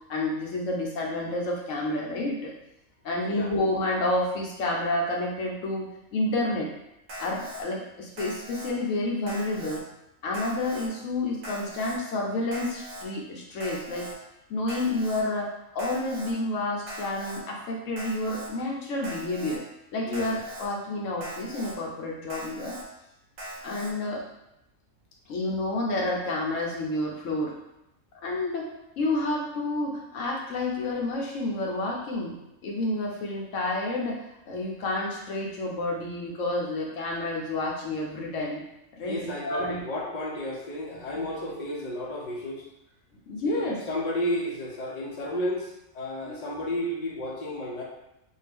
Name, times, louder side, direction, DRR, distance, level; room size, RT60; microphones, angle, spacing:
voice 1, 0.1-2.5 3.0-6.7 7.2-9.8 10.2-14.1 14.5-19.6 19.9-22.8 23.6-24.2 25.3-27.5 28.2-28.7 29.0-32.3 32.6-34.1 34.5-38.6 38.9-39.8 43.3-43.8 46.2-46.4, left 2 dB, 70° left, -1 dB, 1.0 m, -29 dB
Alarm, 7.1-7.6 8.2-8.7 9.3-9.8 10.3-10.9 11.4-12.0 12.5-13.0 13.6-14.1 14.7-15.2 15.8-16.3 16.9-17.4 18.0-18.5 19.0-19.6 20.1-20.7 21.2-21.7 22.3-22.8 23.4-23.9, right 1 dB, 65° right, 1.0 m, -40 dB
voice 2, 39.0-42.7 43.4-47.8, left 1 dB, 40° left, -3 dB, 0.6 m, -32 dB
3.6 x 2.4 x 3.4 m, 0.87 s
omnidirectional pair, 1.4 m